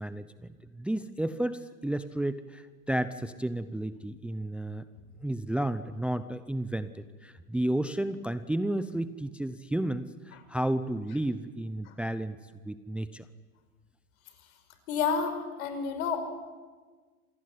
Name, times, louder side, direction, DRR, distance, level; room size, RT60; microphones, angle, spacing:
voice 1, 0.0-4.9 5.2-12.4 12.6-13.3, right 1 dB, 5° right, 12 dB, 0.7 m, -32 dB
voice 2, 14.9-16.2, left 6 dB, 65° left, 8 dB, 5.7 m, -30 dB
27.0 x 18.5 x 9.6 m, 1.4 s
hypercardioid pair, 100°, 45 cm